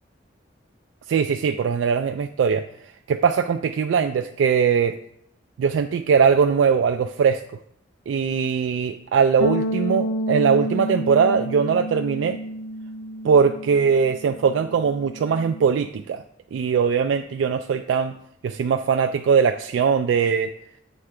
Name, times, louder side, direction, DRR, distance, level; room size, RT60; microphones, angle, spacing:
voice 1, 1.1-2.7 3.1-5.0 5.6-7.4 8.1-12.4 13.2-16.2 16.5-18.1 18.4-20.5, right 6 dB, 80° right, 7 dB, 0.3 m, -20 dB
Bass guitar, 9.4-15.7, equal, 85° left, 0.3 m, -30 dB
7.6 x 3.2 x 4.8 m, 0.73 s
head